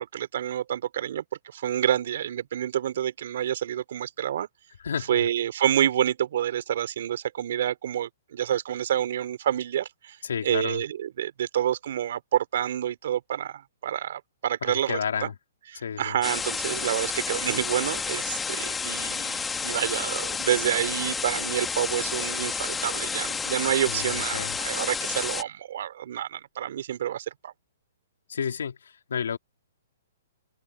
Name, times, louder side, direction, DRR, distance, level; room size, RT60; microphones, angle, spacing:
voice 1, 0.0-4.5 5.1-10.2 10.4-15.3 15.7-27.5, right 10 dB, 65° right, 3.3 m, -28 dB
voice 2, 4.8-5.3 10.2-10.8 14.6-15.3 15.7-16.2 23.8-24.6 28.3-29.4, left 7 dB, 80° left, 3.0 m, -31 dB
sound 1, 16.2-25.4, left 5 dB, 10° left, 2.0 m, -30 dB
hypercardioid pair, 135°, 0 cm